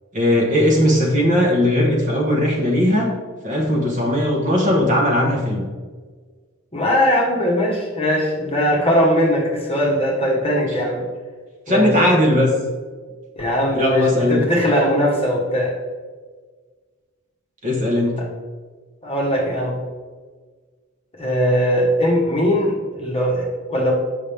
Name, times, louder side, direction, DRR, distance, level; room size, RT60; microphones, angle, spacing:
voice 1, 0.1-3.1 3.4-5.7 11.7-12.5 13.7-14.4 17.6-18.2, left 1 dB, 35° right, -1 dB, 1.1 m, -18 dB
voice 2, 6.7-11.0 11.7-11.9 13.4-15.8 18.2-18.3 19.0-19.8 21.1-23.9, equal, 25° left, -2 dB, 1.2 m, -20 dB
7.2 x 5.6 x 3.5 m, 1.5 s
head